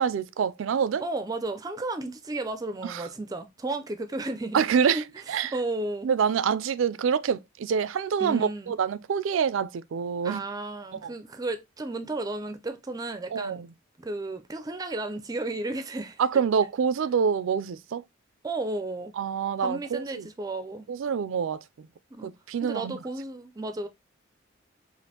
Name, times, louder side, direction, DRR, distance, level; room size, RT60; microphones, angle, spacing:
voice 1, 0.0-1.0 2.8-3.0 4.5-5.5 6.0-10.4 11.0-11.1 13.3-13.7 16.2-18.0 19.2-20.3 20.9-21.9 22.2-23.0, right 7 dB, 85° right, 0.4 m, -26 dB
voice 2, 1.0-4.6 4.9-5.0 5.5-6.1 8.2-8.7 10.2-13.6 14.0-16.2 18.4-19.1 19.6-20.9 22.1-22.3 22.6-23.9, right 2 dB, 20° right, 0.4 m, -33 dB
5.1 x 2.5 x 2.8 m
head